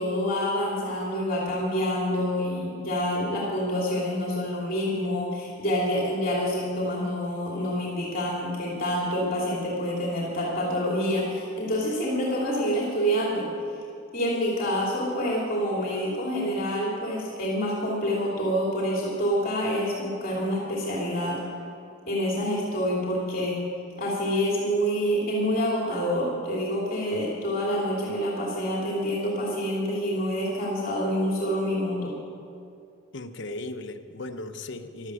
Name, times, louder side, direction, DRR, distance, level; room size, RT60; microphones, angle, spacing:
voice 1, 0.0-13.5 14.1-21.4 22.1-23.6 24.0-32.2, equal, 45° left, -4 dB, 2.9 m, -27 dB
voice 2, 33.1-35.1, left 2 dB, 60° left, 6 dB, 0.9 m, -37 dB
16.0 x 12.5 x 6.3 m, 2.5 s
head